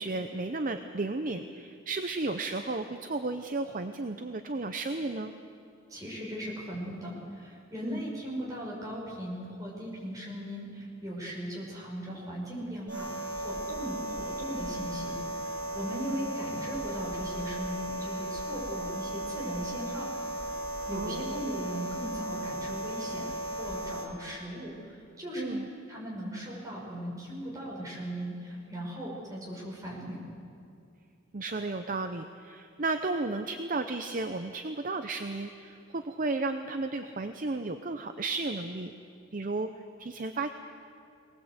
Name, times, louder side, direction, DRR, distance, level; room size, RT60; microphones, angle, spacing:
voice 1, 0.0-5.3 7.8-8.0 20.9-21.4 25.4-25.7 31.3-38.9 39.3-39.7 40.0-40.5, right 3 dB, 40° right, 7 dB, 0.7 m, -33 dB
voice 2, 5.9-15.2 15.4-20.1 20.9-25.6 25.9-30.2, equal, 15° right, -4 dB, 5.9 m, -38 dB
sound 1, 12.9-24.1, right 1 dB, 60° right, 4.8 m, -36 dB
23.0 x 19.0 x 8.1 m, 2.5 s
head